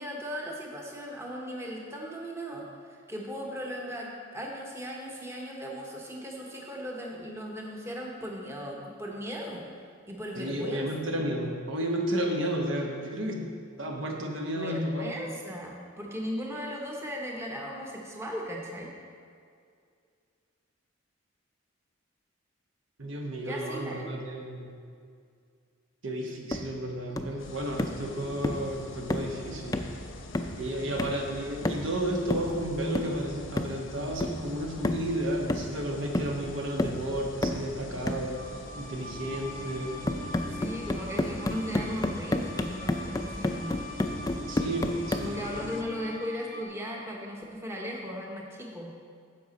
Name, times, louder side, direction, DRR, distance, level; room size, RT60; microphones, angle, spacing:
voice 1, 0.0-9.6 10.1-10.8 14.5-18.9 23.5-24.2 40.4-43.9 45.1-48.9, equal, 15° right, -1 dB, 0.9 m, -37 dB
voice 2, 10.3-13.5 13.8-15.1 23.0-24.7 26.0-29.8 30.6-40.0 44.4-45.5, right 1 dB, 80° right, 1 dB, 1.2 m, -32 dB
sound 1, 26.5-26.7 27.2-27.4 27.8-28.0 28.4-28.7 29.1-29.4 29.7-30.0 30.3-30.6 31.0-31.2 31.6-32.0 32.3-32.6 32.9-33.2 33.6-33.8 34.2-34.5 34.8-35.1 35.5-35.9 36.1-36.4 36.8-37.0 37.4-37.7 38.1-38.3 40.1-45.3, left 1 dB, 20° left, 0.4 m, -31 dB
sound 2, 27.4-45.8, left 2 dB, 85° left, 0.9 m, -44 dB
sound 3, 38.3-46.6, left 1 dB, 50° right, 1.2 m, -43 dB
10.0 x 7.3 x 4.2 m, 2.3 s
head